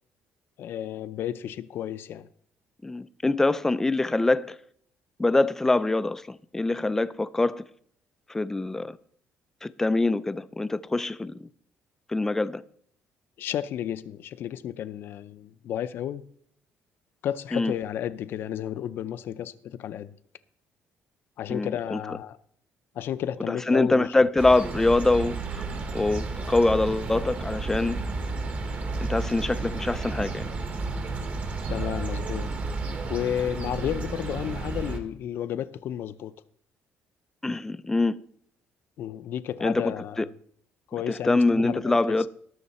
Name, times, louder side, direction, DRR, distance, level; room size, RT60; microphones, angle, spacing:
voice 1, 0.6-2.3 13.4-16.2 17.2-20.2 21.4-22.4 22.9-24.3 31.7-32.5 33.1-36.3 39.0-40.3 40.9-42.2, left 10 dB, 60° left, 0.5 m, -32 dB
voice 2, 2.8-4.6 5.2-7.6 8.3-9.0 9.6-11.3 12.1-12.6 17.5-17.7 21.5-22.0 23.5-25.4 25.9-28.0 29.1-30.4 37.4-38.2 39.6-40.3 41.1-42.3, left 2 dB, 10° left, 0.4 m, -24 dB
sound 1, 24.4-35.0, right 3 dB, 35° right, 1.3 m, -32 dB
19.0 x 6.6 x 4.2 m
cardioid pair, 150°, 4 cm